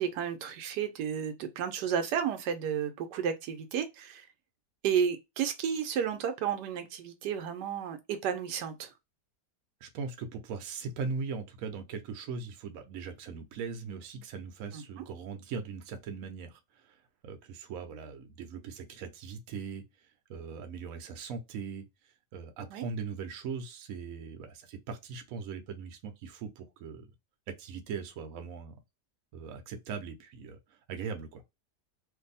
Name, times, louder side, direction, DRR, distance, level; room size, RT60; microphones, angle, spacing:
voice 1, 0.0-4.3 4.8-8.9 14.7-15.0 22.7-22.8, right 8 dB, 80° right, 1.2 m, -32 dB
voice 2, 9.8-16.6 17.2-19.8 20.3-21.8 22.3-27.1 27.6-28.8 29.3-30.6 30.9-31.4, right 5 dB, 65° right, 1.0 m, -39 dB
2.6 x 2.6 x 4.0 m
omnidirectional pair, 1.8 m